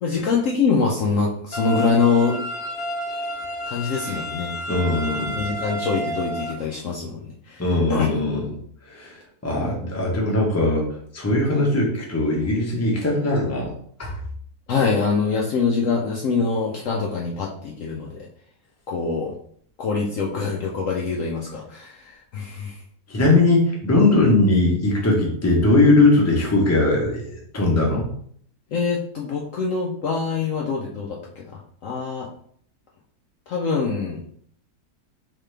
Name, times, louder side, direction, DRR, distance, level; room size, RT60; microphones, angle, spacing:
voice 1, 0.0-2.4 3.7-4.5 5.3-7.6 7.9-8.1 14.7-18.3 18.9-19.3 19.8-22.8 28.7-32.3 33.5-34.2, left 4 dB, 65° left, -2 dB, 0.8 m, -24 dB
sound 1, 1.5-6.5, equal, 85° left, 1.2 m, -30 dB
voice 2, 4.7-5.4 7.6-8.5 8.9-9.2 9.4-10.9 11.1-13.7 14.0-14.1 23.1-28.0, left 2 dB, 15° left, -3 dB, 0.7 m, -20 dB
3.9 x 3.2 x 3.2 m, 0.62 s
omnidirectional pair, 1.7 m